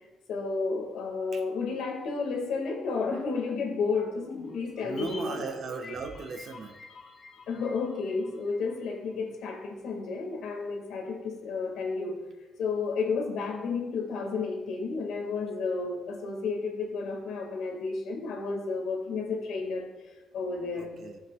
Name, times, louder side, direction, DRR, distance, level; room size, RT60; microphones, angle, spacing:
voice 1, 0.3-5.5 7.5-12.2 12.6-19.9 20.3-20.9, left 4 dB, 80° left, 2 dB, 1.6 m, -32 dB
sound 1, 4.2-8.7 9.0-9.1, left 3 dB, 55° left, 2.8 m, -46 dB
voice 2, 4.8-6.8 20.7-21.2, right 4 dB, 60° right, 5 dB, 1.0 m, -37 dB
14.0 x 7.2 x 2.2 m, 1.2 s
cardioid pair, 90°, 0 cm